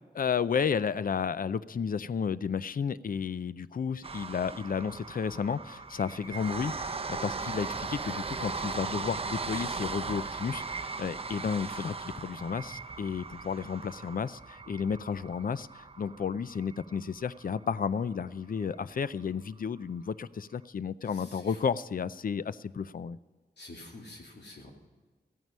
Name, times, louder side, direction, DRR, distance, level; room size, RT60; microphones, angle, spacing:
voice 1, 0.2-23.2, left 6 dB, 55° left, 16 dB, 0.4 m, -32 dB
sound 1, 4.0-18.1 18.6-18.7 18.9-19.0, right 4 dB, 35° right, 0.6 m, -38 dB
voice 2, 21.0-21.6 23.6-24.7, left 2 dB, 75° left, -1 dB, 2.3 m, -48 dB
14.5 x 9.2 x 5.5 m, 1.4 s
wide cardioid pair, 95°, 17 cm